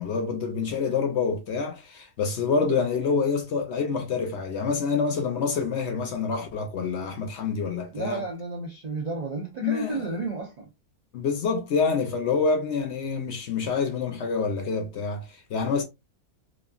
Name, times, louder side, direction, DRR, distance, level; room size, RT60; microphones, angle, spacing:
voice 1, 0.0-8.2 9.6-10.2 11.1-15.8, left 5 dB, 60° left, 0.7 m, -27 dB
voice 2, 7.9-10.7, right 3 dB, 70° right, 0.4 m, -32 dB
3.0 x 2.4 x 2.3 m
omnidirectional pair, 1.5 m